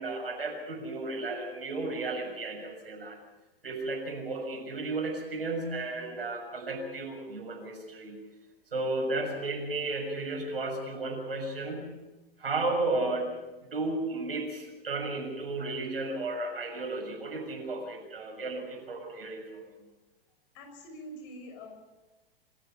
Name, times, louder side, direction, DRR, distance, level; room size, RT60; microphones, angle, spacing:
voice 1, 0.0-3.2 3.6-8.2 8.7-12.0 12.4-13.4 13.7-19.6, right 2 dB, 75° right, 2 dB, 6.7 m, -33 dB
voice 2, 20.5-21.7, equal, 45° left, 5 dB, 6.3 m, -45 dB
25.5 x 14.0 x 7.3 m, 1.1 s
figure-of-eight pair, 95°, 29 cm